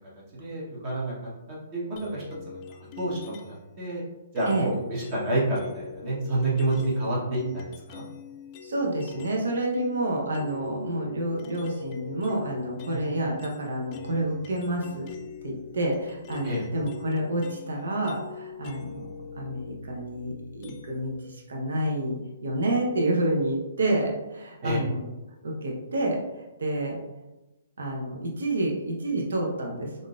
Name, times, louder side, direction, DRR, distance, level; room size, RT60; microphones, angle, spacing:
voice 1, 0.3-1.1 1.5-2.6 2.9-4.0 4.3-8.0 12.9-13.0 16.4-16.6 24.6-24.8, right 2 dB, 35° right, -6 dB, 1.0 m, -29 dB
sound 1, 2.0-3.7 4.4-9.4 9.7-21.2, left 7 dB, 35° left, 0.3 m, -43 dB
voice 2, 8.6-15.1 15.4-19.0 19.3-25.1 25.4-26.2 26.6-27.0 27.8-30.1, right 1 dB, 80° right, -1 dB, 0.7 m, -29 dB
3.6 x 2.5 x 2.4 m, 1.0 s
hypercardioid pair, 145°, 0 cm